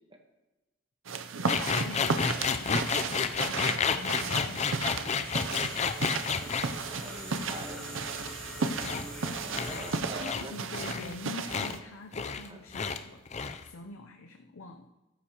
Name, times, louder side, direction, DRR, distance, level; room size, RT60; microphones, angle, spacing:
sound 1, 1.1-11.8, right 4 dB, 75° right, 0.6 m, -34 dB
voice 1, 1.4-3.1 3.4-5.8 7.3-7.7 8.8-9.1 10.2-13.2 13.6-14.9, left 3 dB, 85° left, 4 dB, 0.6 m, -45 dB
sound 2, 1.5-6.7 8.8-9.0 9.5-9.9 10.2-10.4 10.7-11.2 11.5-11.8 12.1-12.5 12.7-13.0 13.3-13.7, left 6 dB, 35° left, 0.5 m, -30 dB
sound 3, 4.9-10.3, equal, 5° left, 3.5 m, -44 dB
voice 2, 6.9-7.8 9.4-10.5 12.5-12.6, right 1 dB, 25° right, 3 dB, 1.3 m, -43 dB
13.5 x 13.0 x 3.0 m, 1.1 s
head